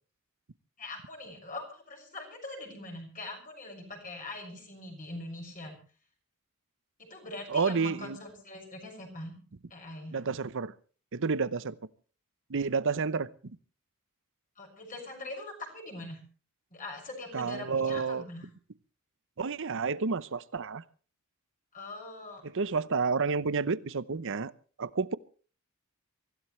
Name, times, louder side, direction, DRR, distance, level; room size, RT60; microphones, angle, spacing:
voice 1, 0.8-5.8 7.0-9.3 9.7-10.2 14.6-16.2 16.7-18.5 21.7-22.4, left 2 dB, 40° left, 2 dB, 6.5 m, -42 dB
voice 2, 7.5-8.2 10.1-10.7 11.1-11.8 12.5-13.6 17.3-18.2 19.4-20.8 22.4-24.5 24.8-25.2, right 5 dB, 60° right, 17 dB, 0.8 m, -30 dB
24.5 x 16.0 x 3.2 m, 0.39 s
head